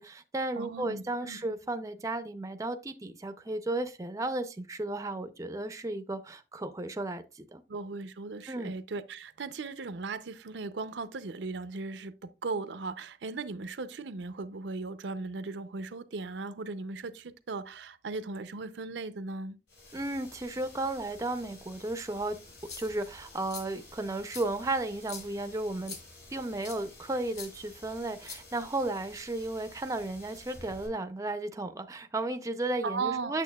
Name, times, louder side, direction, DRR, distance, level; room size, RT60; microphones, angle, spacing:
voice 1, 0.0-7.6 8.5-8.7 19.9-22.4 22.8-26.0 26.3-33.4, right 2 dB, 20° right, 0.5 m, -34 dB
voice 2, 0.6-1.4 7.7-19.6 32.8-33.4, right 3 dB, 75° right, 0.5 m, -37 dB
sound 1, 19.7-30.9, left 2 dB, 70° left, 4.3 m, -52 dB
sound 2, 22.5-23.1 23.5-23.6 24.3-24.4 25.0-25.3 25.8-26.0 26.6-26.8 27.3-27.5 28.2-28.8, left 5 dB, 35° left, 2.0 m, -43 dB
8.4 x 6.9 x 2.3 m
head